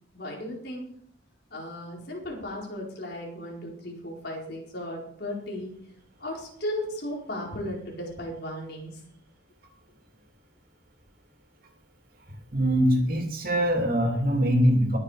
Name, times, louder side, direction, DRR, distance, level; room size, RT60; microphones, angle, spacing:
voice 1, 0.1-0.9 1.5-5.7 6.2-9.0, left 1 dB, 55° left, -2 dB, 4.5 m, -35 dB
voice 2, 12.5-15.0, equal, 45° right, 3 dB, 2.9 m, -23 dB
22.0 x 7.5 x 5.0 m, 0.67 s
head